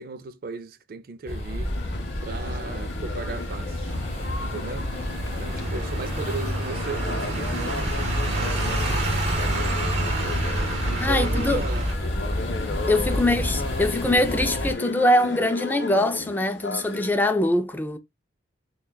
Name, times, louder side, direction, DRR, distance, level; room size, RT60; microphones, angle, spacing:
voice 1, 0.0-1.7 2.2-3.9 4.4-4.9 5.4-9.7 10.8-11.9 13.1-13.5, right 4 dB, 50° right, 0.4 m, -37 dB
sound 1, 1.3-14.7, left 1 dB, 35° left, 1.0 m, -31 dB
sound 2, 1.6-17.1, left 4 dB, 65° left, 0.6 m, -35 dB
sound 3, 3.9-11.9, right 1 dB, 35° right, 1.2 m, -28 dB
voice 2, 11.0-11.7 12.9-18.0, left 1 dB, 10° left, 0.3 m, -23 dB
6.4 x 2.2 x 2.2 m
head